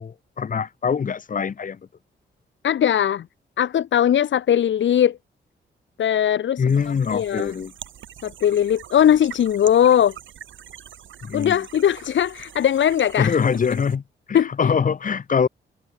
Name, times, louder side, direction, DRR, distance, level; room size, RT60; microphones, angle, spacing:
voice 1, 0.0-1.8 6.6-7.7 11.2-11.6 13.2-14.0 14.3-15.5, left 6 dB, 45° left, 1.6 m, -23 dB
voice 2, 2.6-3.3 3.6-5.2 6.0-6.6 7.1-7.5 8.2-10.1 11.3-13.3 14.3-14.7, left 10 dB, 75° left, 1.6 m, -19 dB
sound 1, 6.7-14.0, right 10 dB, 80° right, 2.7 m, -43 dB
wide cardioid pair, 125°, 20 cm